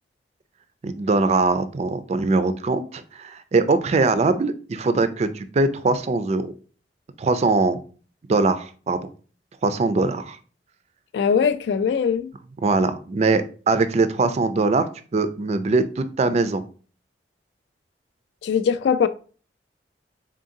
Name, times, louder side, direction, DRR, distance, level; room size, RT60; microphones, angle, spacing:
voice 1, 0.8-6.5 7.2-7.8 8.3-9.1 9.6-10.4 12.6-16.6, right 3 dB, 35° right, 0.3 m, -22 dB
voice 2, 11.1-12.3 18.4-19.1, left 6 dB, 70° left, 0.3 m, -21 dB
3.7 x 3.6 x 2.6 m
head